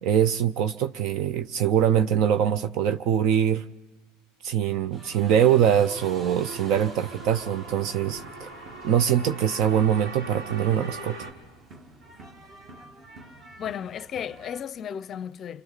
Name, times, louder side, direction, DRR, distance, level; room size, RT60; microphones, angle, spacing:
voice 1, 0.0-3.6 4.4-8.5 8.8-11.2, right 9 dB, 60° right, 0.7 m, -23 dB
sound 1, 4.9-14.6, right 2 dB, 35° right, 1.9 m, -48 dB
sound 2, 5.9-11.3, right 2 dB, 80° right, 5.5 m, -41 dB
voice 2, 13.6-15.6, left 9 dB, 40° left, 0.6 m, -34 dB
29.5 x 23.5 x 4.1 m
supercardioid pair, 105°, 0 cm